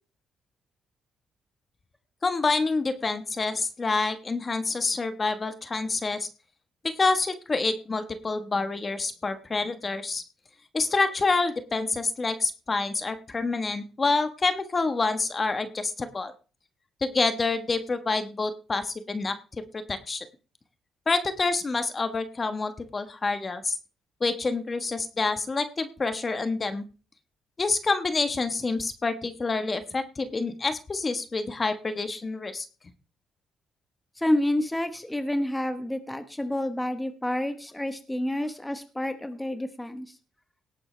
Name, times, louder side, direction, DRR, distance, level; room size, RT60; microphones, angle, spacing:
voice 1, 2.2-6.3 6.8-10.2 10.7-16.3 17.0-19.4 19.9-20.3 21.1-23.8 24.2-26.8 27.6-32.7, left 3 dB, 30° left, 9 dB, 1.3 m, -27 dB
voice 2, 34.2-40.1, left 1 dB, 10° left, 8 dB, 1.2 m, -29 dB
18.0 x 8.3 x 3.3 m, 0.36 s
cardioid pair, 90°, 0 cm